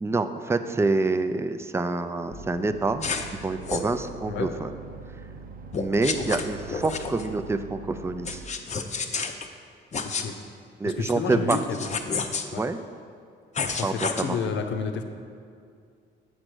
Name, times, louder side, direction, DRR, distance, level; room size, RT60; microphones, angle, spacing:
voice 1, 0.0-4.7 5.7-8.4 10.8-11.6 12.6-12.8 13.8-14.4, right 3 dB, 15° right, 9 dB, 0.4 m, -27 dB
sound 1, 2.3-8.4, right 4 dB, 45° right, 0.7 m, -42 dB
sound 2, 3.0-3.3 3.7-3.9 5.7-7.3 8.3-9.5 9.9-10.3 11.5-12.5 13.6-14.2, left 5 dB, 35° left, 0.6 m, -30 dB
voice 2, 10.0-10.3 10.8-11.9 12.5-12.6 13.8-15.0, left 5 dB, 65° left, 6 dB, 0.8 m, -30 dB
7.7 x 5.1 x 6.2 m, 2.4 s
cardioid pair, 90°, 20 cm